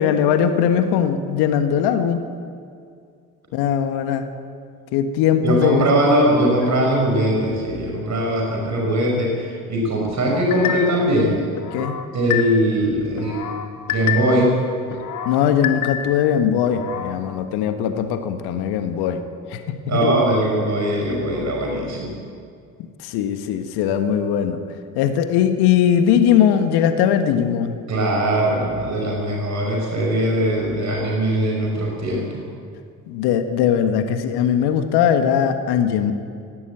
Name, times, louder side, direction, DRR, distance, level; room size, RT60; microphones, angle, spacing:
voice 1, 0.0-2.2 3.5-4.2 4.9-6.1 11.7-12.0 15.2-19.2 19.5-20.1 23.0-24.6 24.9-27.8 33.1-36.1, left 8 dB, 60° left, 8 dB, 1.6 m, -20 dB
voice 2, 5.4-11.4 12.1-13.5 13.9-14.6 19.9-22.2 27.9-32.4, right 1 dB, 40° right, -1 dB, 5.5 m, -20 dB
sound 1, 10.5-11.1 11.6-12.8 13.2-14.5 14.9-16.3 16.7-17.2, left 9 dB, 45° left, 2.0 m, -28 dB
17.5 x 17.5 x 8.9 m, 2.3 s
figure-of-eight pair, 55°, 44 cm